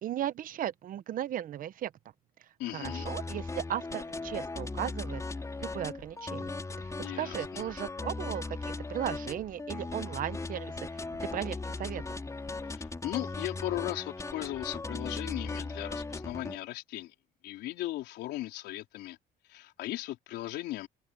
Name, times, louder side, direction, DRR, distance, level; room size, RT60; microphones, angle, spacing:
voice 1, 0.0-1.9 2.7-5.2 5.6-6.5 7.1-12.0, right 11 dB, 55° right, 0.9 m, -36 dB
voice 2, 2.6-3.1 7.0-7.7 12.7-17.1 17.4-19.2 19.5-20.9, left 16 dB, 85° left, 3.8 m, -37 dB
sound 1, 2.8-16.6, left 3 dB, 20° left, 4.4 m, -38 dB
cardioid pair, 110°, 17 cm